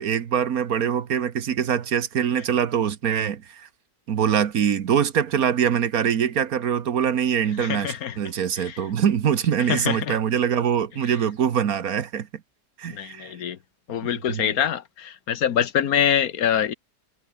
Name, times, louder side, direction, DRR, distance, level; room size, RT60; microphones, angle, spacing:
voice 1, 0.0-3.7 4.1-12.3 12.8-13.3 14.3-14.5, right 8 dB, 60° right, 1.5 m, -23 dB
voice 2, 7.6-8.2 8.6-8.8 9.7-10.2 12.9-13.6 13.9-16.7, left 9 dB, 60° left, 1.5 m, -25 dB
omnidirectional pair, 1.8 m